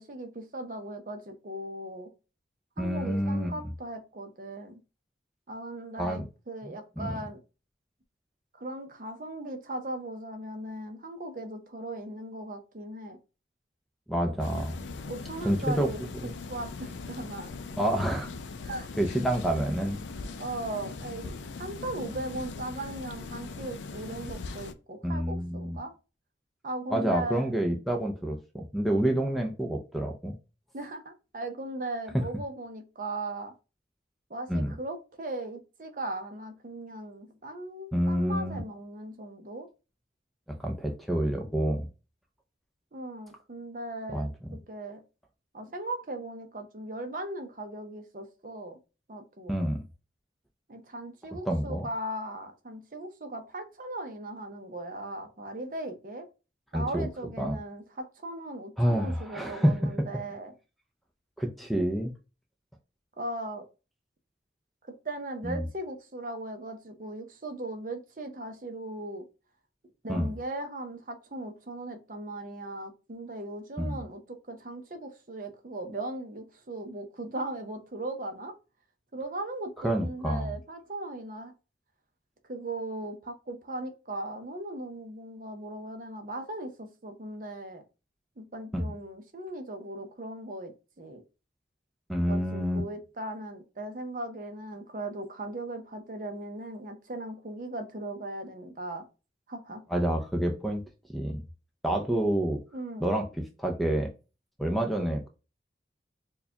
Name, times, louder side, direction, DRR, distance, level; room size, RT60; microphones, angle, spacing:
voice 1, 0.0-2.1 2.8-4.8 5.5-7.4 8.5-13.2 15.1-17.5 18.6-18.9 20.4-25.9 26.6-27.5 30.7-33.5 34.3-39.7 42.9-45.0 45.5-48.8 49.1-49.6 50.7-56.3 56.7-60.5 63.2-63.7 65.0-69.2 70.0-78.5 79.1-81.5 82.5-87.8 88.4-90.7 91.0-91.2 92.3-99.0 99.5-99.8 102.7-103.0, right 1 dB, 45° right, 6 dB, 0.6 m, -38 dB
voice 2, 2.8-3.6 6.0-6.3 6.6-7.1 14.1-14.8 15.4-15.9 16.2-16.3 17.8-18.3 19.0-20.0 25.0-25.8 26.9-30.4 32.1-32.2 34.5-34.7 37.9-38.6 40.5-41.9 44.1-44.3 49.5-49.8 51.4-51.9 56.7-57.1 57.4-57.6 58.8-59.8 61.4-62.1 65.4-65.6 70.1-70.3 73.8-74.0 79.8-80.5 88.7-88.8 92.1-92.9 99.9-100.8 101.1-101.4 101.8-102.6 103.0-103.3 103.6-104.1 104.6-105.3, right 1 dB, ahead, 2 dB, 0.4 m, -28 dB
sound 1, 14.4-24.7, left 3 dB, 80° left, 0.4 m, -40 dB
4.5 x 2.3 x 2.8 m, 0.31 s
head